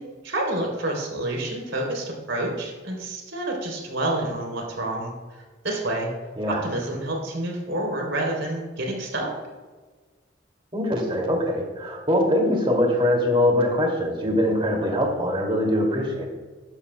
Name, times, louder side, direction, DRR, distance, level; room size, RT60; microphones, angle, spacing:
voice 1, 0.0-5.1 5.6-6.1 6.5-9.3, right 1 dB, 80° right, 0 dB, 3.3 m, -28 dB
voice 2, 6.4-6.7 10.7-16.3, left 1 dB, 30° right, 1 dB, 2.4 m, -22 dB
14.5 x 12.0 x 2.2 m, 1.3 s
head